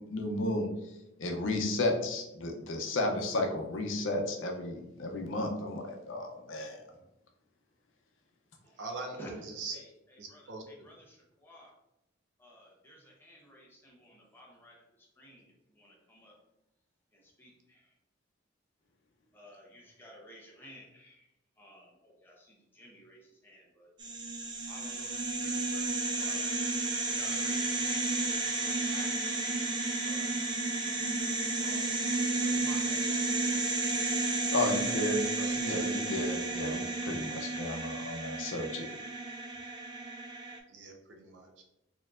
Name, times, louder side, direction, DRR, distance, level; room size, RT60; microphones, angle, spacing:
voice 1, 0.1-0.7 1.2-6.8 34.5-35.3 35.6-38.9, left 2 dB, 90° left, 2 dB, 0.6 m, -33 dB
voice 2, 8.8-9.8 10.2-10.6 35.4-35.9 40.7-41.6, right 3 dB, 70° right, 2 dB, 0.6 m, -42 dB
voice 3, 10.3-11.7 12.4-14.8 15.2-15.4 15.8-16.3 17.4-17.8 19.3-21.2 21.6-22.5 22.7-23.9 24.7-25.8 26.2-26.6 27.0-28.2 28.4-29.7 30.1-30.3 30.6-30.7 31.6-31.9 32.4-33.6, equal, 10° left, -3 dB, 0.8 m, -53 dB
sound 1, 24.0-40.6, right 3 dB, 25° right, 0.4 m, -32 dB
4.3 x 2.9 x 2.4 m, 0.89 s
head